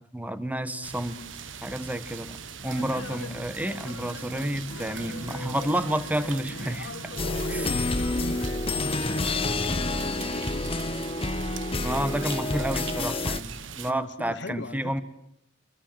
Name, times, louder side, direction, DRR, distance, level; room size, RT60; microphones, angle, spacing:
voice 1, 0.1-1.2 1.6-2.4 2.6-7.1 7.5-7.7 11.8-15.0, right 1 dB, 10° right, 11 dB, 1.5 m, -30 dB
voice 2, 0.7-1.0 7.4-8.5 9.2-10.8 13.7-14.9, left 2 dB, 65° left, 14 dB, 1.2 m, -39 dB
sound 1, 0.8-13.9, right 7 dB, 70° right, 1.4 m, -41 dB
sound 2, 2.7-9.2, left 3 dB, 80° left, 1.3 m, -41 dB
sound 3, 7.2-13.4, left 2 dB, 30° left, 1.0 m, -28 dB
28.5 x 22.5 x 7.7 m, 0.74 s
head